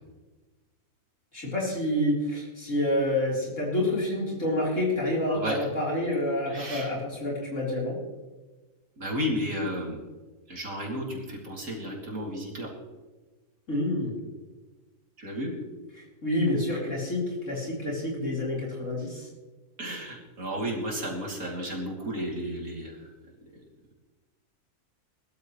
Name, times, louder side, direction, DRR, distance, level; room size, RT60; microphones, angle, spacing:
voice 1, 1.3-8.0 13.7-14.2 15.9-19.3, left 1 dB, 55° left, -4 dB, 4.4 m, -28 dB
voice 2, 6.5-6.9 9.0-10.0 10.5-12.7 15.2-15.5 19.8-22.9, equal, 65° right, -2 dB, 3.4 m, -32 dB
20.5 x 13.0 x 3.2 m, 1.2 s
omnidirectional pair, 1.6 m